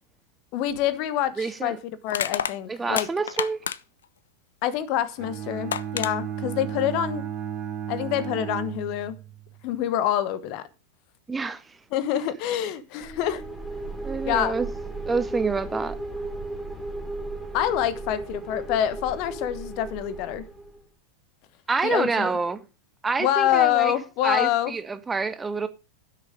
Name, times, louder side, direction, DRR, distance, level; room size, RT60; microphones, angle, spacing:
voice 1, 0.5-1.8 2.0-3.1 4.6-7.2 7.9-9.2 9.6-10.7 11.9-13.4 14.3-14.5 17.5-20.4 21.8-22.3 23.2-24.7, left 11 dB, 45° left, 1.1 m, -26 dB
Crushing, 0.7-0.9 2.1-4.0 5.2-5.3 5.7-6.1, left 8 dB, 65° left, 0.5 m, -29 dB
voice 2, 1.4-1.8 2.7-3.6 11.3-11.6 14.0-14.7 15.1-16.0 21.7-22.6 23.0-23.9 24.2-25.7, right 4 dB, 15° right, 0.7 m, -27 dB
Bowed string instrument, 5.2-9.4, right 9 dB, 35° right, 2.4 m, -33 dB
sound 1, 13.0-20.8, right 2 dB, 5° left, 2.5 m, -35 dB
12.0 x 6.5 x 5.1 m
figure-of-eight pair, 90°, 0 cm